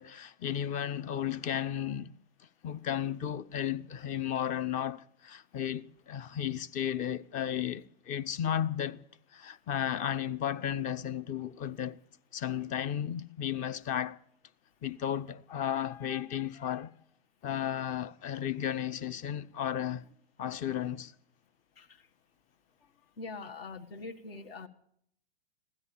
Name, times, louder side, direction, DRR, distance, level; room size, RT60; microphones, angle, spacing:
voice 1, 0.0-2.1 2.4-9.0 9.3-12.0 12.3-14.2 14.8-16.9 17.4-20.1 20.4-21.1, left 10 dB, 25° left, 0.5 m, -34 dB
voice 2, 23.2-24.7, left 3 dB, 70° left, 1.7 m, -43 dB
16.0 x 13.0 x 7.0 m
hypercardioid pair, 115°, 31 cm